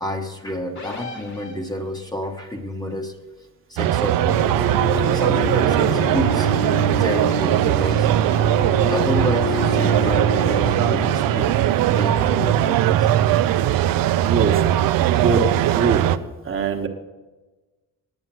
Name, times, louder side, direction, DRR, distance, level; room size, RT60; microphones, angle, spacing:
voice 1, 0.0-3.2 3.7-4.4 5.0-6.5 7.0-8.1 8.9-13.3 15.0-15.2, left 1 dB, 10° left, 3 dB, 1.1 m, -29 dB
sound 1, 0.8-2.1, left 3 dB, 55° left, 2.4 m, -37 dB
sound 2, 3.8-16.2, right 12 dB, 85° right, 0.6 m, -19 dB
sound 3, 4.3-12.3, left 3 dB, 70° left, 3.2 m, -29 dB
voice 2, 14.3-15.5 15.7-16.0 16.4-16.9, right 5 dB, 40° right, 3 dB, 1.3 m, -23 dB
9.5 x 9.0 x 7.5 m, 1.2 s
cardioid pair, 115°, 33 cm